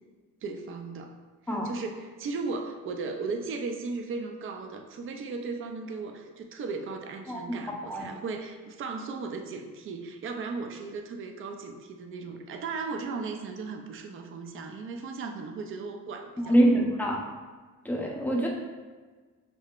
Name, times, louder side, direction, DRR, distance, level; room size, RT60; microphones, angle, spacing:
voice 1, 0.4-1.2 1.4-16.9, right 4 dB, 40° right, 4 dB, 0.5 m, -36 dB
voice 2, 16.4-17.2 17.8-18.5, right 1 dB, 5° left, -1 dB, 0.7 m, -24 dB
5.4 x 3.7 x 2.4 m, 1.4 s
cardioid pair, 120°, 31 cm